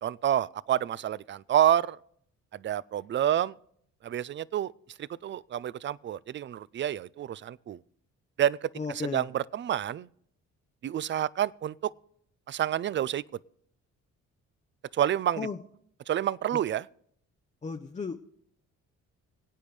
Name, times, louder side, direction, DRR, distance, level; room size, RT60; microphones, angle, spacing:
voice 1, 0.0-2.0 2.5-3.6 4.0-4.7 5.0-7.8 8.4-10.1 10.8-11.9 12.5-13.2 14.9-15.5 16.1-16.9, right 11 dB, 40° right, 0.4 m, -28 dB
voice 2, 8.8-9.3 15.4-15.6 17.6-18.2, left 4 dB, 25° left, 0.6 m, -34 dB
25.5 x 8.7 x 3.3 m
cardioid pair, 90°, 30 cm